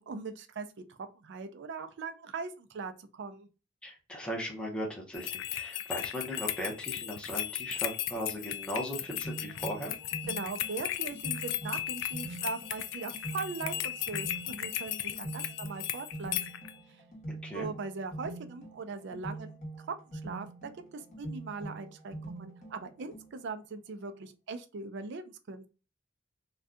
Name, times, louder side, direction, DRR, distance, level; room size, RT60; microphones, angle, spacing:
voice 1, 0.0-3.5 10.3-16.4 17.5-19.9 20.2-20.5 20.9-25.7, right 4 dB, 60° right, 8 dB, 0.4 m, -40 dB
voice 2, 3.8-9.9 17.3-17.7, equal, 5° left, -2 dB, 0.7 m, -38 dB
sound 1, 5.1-16.7, left 12 dB, 65° left, 0.3 m, -36 dB
sound 2, 9.0-23.6, right 2 dB, 35° left, 1.1 m, -44 dB
2.6 x 2.3 x 3.4 m, 0.33 s
head